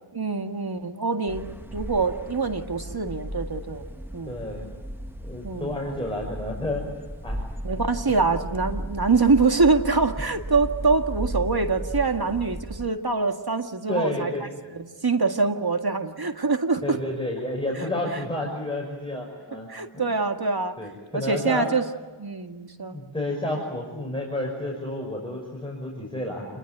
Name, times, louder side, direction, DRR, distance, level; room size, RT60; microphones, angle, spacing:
voice 1, 0.1-3.8 4.1-4.4 5.4-5.8 7.6-14.3 14.7-17.0 19.7-20.8 21.1-21.8 22.2-23.0, right 4 dB, 50° right, 5 dB, 2.0 m, -24 dB
sound 1, 1.3-12.9, right 1 dB, 5° right, 1.3 m, -35 dB
voice 2, 4.3-4.7 5.2-6.8 7.2-7.4 7.7-7.8 13.9-14.4 16.8-20.1 20.8-21.7 22.9-26.5, left 1 dB, 10° left, -1 dB, 5.9 m, -30 dB
27.5 x 21.0 x 9.2 m, 1.3 s
wide cardioid pair, 50°, 47 cm